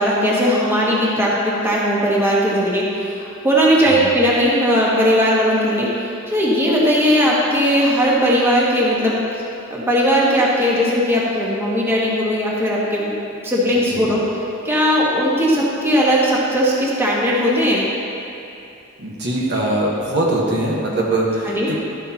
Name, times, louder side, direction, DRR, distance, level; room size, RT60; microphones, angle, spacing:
voice 1, 0.0-9.2 9.7-13.1 13.4-14.2 14.6-17.9 21.4-21.7, equal, 10° right, -6 dB, 1.5 m, -18 dB
voice 2, 3.8-4.1 13.7-14.1 19.0-21.8, right 1 dB, 55° right, -3 dB, 1.4 m, -22 dB
12.5 x 11.0 x 3.0 m, 2.7 s
head